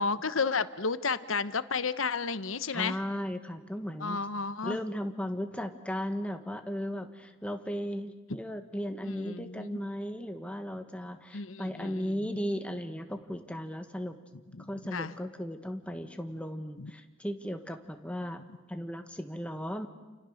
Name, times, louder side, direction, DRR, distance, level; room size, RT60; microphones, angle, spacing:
voice 1, 0.0-3.0 4.0-4.8 9.0-9.8 11.3-12.2 14.5-15.1 16.8-16.9, left 4 dB, 80° left, 13 dB, 1.1 m, -32 dB
voice 2, 2.7-4.2 4.6-14.1 14.7-18.4 18.7-19.9, equal, 5° left, 6 dB, 1.6 m, -36 dB
29.5 x 29.0 x 6.5 m, 1.2 s
head